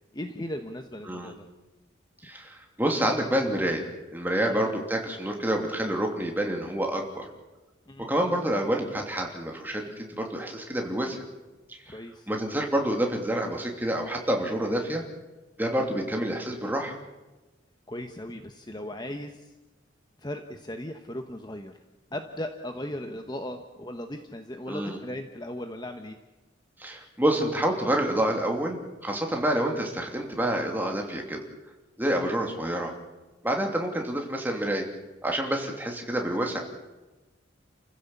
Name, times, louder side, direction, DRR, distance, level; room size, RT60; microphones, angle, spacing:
voice 1, 0.1-1.5 4.5-4.7 7.9-8.1 11.9-12.3 17.9-19.5 20.2-21.7 22.1-26.2 32.1-32.3 35.5-35.7, left 1 dB, 20° left, 6 dB, 1.1 m, -37 dB
voice 2, 2.2-7.3 8.1-11.2 11.7-12.0 12.3-15.0 15.6-17.0 24.7-25.0 26.8-31.4 32.0-32.9 33.4-34.9 35.2-36.6, right 1 dB, 10° right, 1 dB, 2.9 m, -28 dB
29.5 x 15.5 x 7.2 m, 1.1 s
head